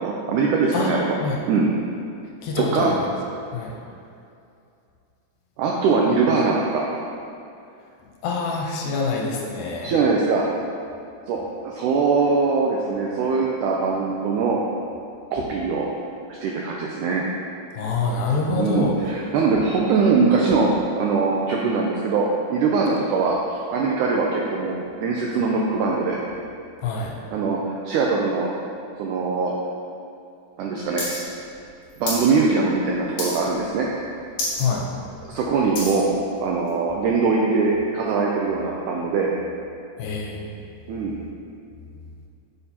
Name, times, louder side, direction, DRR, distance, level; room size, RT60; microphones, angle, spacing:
voice 1, 0.0-1.2 1.5-1.7 2.6-2.9 5.6-6.8 9.8-10.4 11.3-14.6 15.3-15.9 16.3-17.2 18.6-20.7 21.0-23.4 23.7-26.2 27.3-27.6 27.9-28.5 29.0-29.5 30.6-31.0 32.0-33.9 35.2-36.1 36.4-39.3 40.9-41.2, right 4 dB, 85° right, -2 dB, 1.8 m, -22 dB
voice 2, 2.4-3.1 3.5-3.7 8.2-9.9 17.8-19.0 26.8-27.1 34.6-34.9 40.0-40.4, left 4 dB, 75° left, -1 dB, 2.5 m, -25 dB
sound 1, 31.0-31.2 31.4-32.3 32.6-32.9 33.2-33.6 34.0-34.1 34.3-34.7 35.1-36.0 36.7-36.8, left 2 dB, 50° left, 2.5 m, -29 dB
8.7 x 6.6 x 2.9 m, 2.5 s
omnidirectional pair, 4.2 m